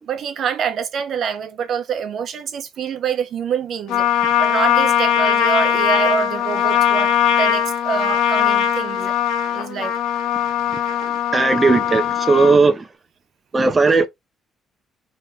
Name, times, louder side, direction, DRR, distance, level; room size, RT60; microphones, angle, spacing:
voice 1, 0.1-4.1 4.4-9.2 9.5-9.9, right 7 dB, 60° right, 1.0 m, -25 dB
Trumpet, 3.9-12.6, left 9 dB, 85° left, 1.4 m, -20 dB
voice 2, 11.3-12.9 13.5-14.0, right 3 dB, 25° right, 0.6 m, -16 dB
4.1 x 3.4 x 3.4 m
cardioid pair, 100°, 0 cm